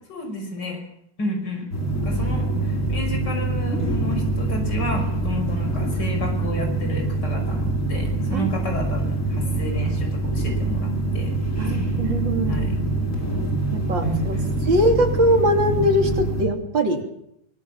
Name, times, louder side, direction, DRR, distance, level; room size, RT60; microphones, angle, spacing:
voice 1, 0.1-0.8 1.2-1.7 2.0-10.9 11.1-11.3 11.6-11.7 12.5-12.8 13.2-13.4 14.0-14.5, equal, 65° left, 3 dB, 6.4 m, -31 dB
sound 1, 1.7-16.5, right 2 dB, 40° left, 6.0 m, -25 dB
voice 2, 11.6-12.7 13.0-13.1 13.7-14.4 14.7-17.0, equal, 80° right, 4 dB, 3.9 m, -21 dB
24.5 x 22.0 x 7.3 m, 0.78 s
omnidirectional pair, 2.0 m